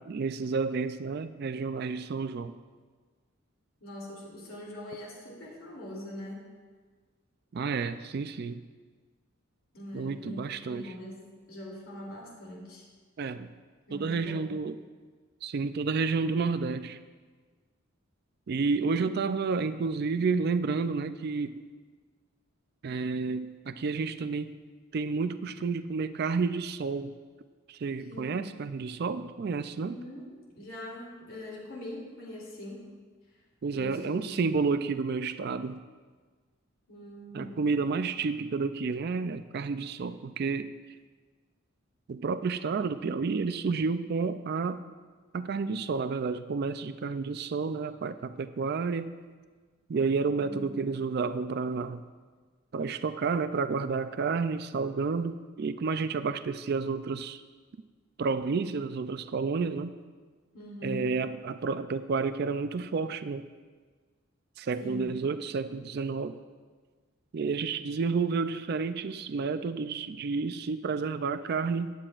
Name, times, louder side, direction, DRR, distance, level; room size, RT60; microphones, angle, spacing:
voice 1, 0.0-2.5 7.5-8.6 9.9-10.9 13.2-13.5 13.9-14.8 15.4-17.0 18.5-21.6 22.8-24.6 24.9-27.1 27.7-30.0 33.6-35.8 37.3-40.7 42.1-44.8 45.3-49.1 49.9-52.0 52.7-57.4 58.2-59.9 60.8-63.5 64.6-66.4 67.3-71.9, right 4 dB, 50° right, 11 dB, 0.4 m, -30 dB
voice 2, 3.8-6.4 9.7-10.4 10.7-11.2 11.5-12.9 13.9-14.6 18.7-19.1 28.1-28.4 29.7-32.9 33.3-33.4 33.7-34.5 36.9-37.6 50.3-50.8 60.5-61.1 64.8-65.1, left 1 dB, 75° left, -3 dB, 2.8 m, -42 dB
17.5 x 10.5 x 2.5 m, 1.5 s
head